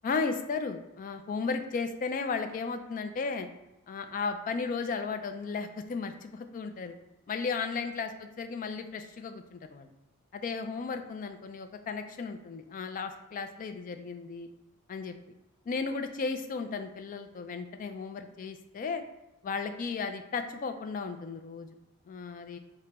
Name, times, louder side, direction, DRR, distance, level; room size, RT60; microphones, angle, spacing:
voice 1, 0.0-3.5 3.9-6.9 7.3-9.9 10.3-14.5 14.9-15.1 15.7-19.0 19.4-21.7 22.1-22.6, left 4 dB, 40° left, 8 dB, 0.3 m, -35 dB
4.2 x 2.1 x 4.1 m, 0.96 s
head